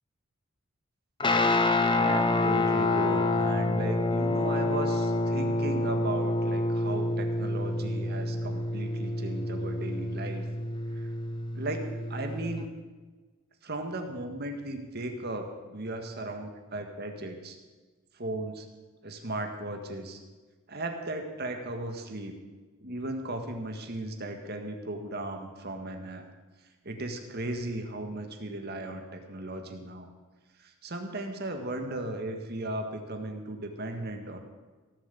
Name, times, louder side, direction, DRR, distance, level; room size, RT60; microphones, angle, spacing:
Guitar, 1.2-12.6, left 2 dB, 25° left, 1.0 m, -28 dB
voice 1, 1.9-10.4 11.0-11.1 11.5-12.7 13.6-17.6 18.2-18.7 19.0-20.2 20.7-22.3 22.8-26.2 26.9-30.1 30.6-34.4, right 2 dB, 50° right, 5 dB, 1.9 m, -36 dB
17.5 x 7.5 x 8.5 m, 1.3 s
head